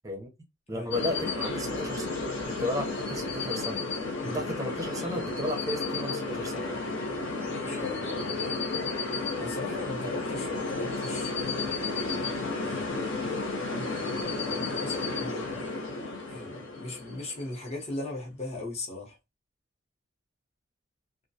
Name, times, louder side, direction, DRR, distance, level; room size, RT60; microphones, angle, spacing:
voice 1, 0.7-2.1 2.5-3.8 4.2-6.5, left 1 dB, 15° right, 0.6 m, -34 dB
sound 1, 0.9-17.7, left 3 dB, 65° left, 0.7 m, -32 dB
voice 2, 7.6-8.6 9.3-15.6 16.3-19.2, left 2 dB, 30° left, 0.8 m, -39 dB
2.3 x 2.1 x 2.6 m
head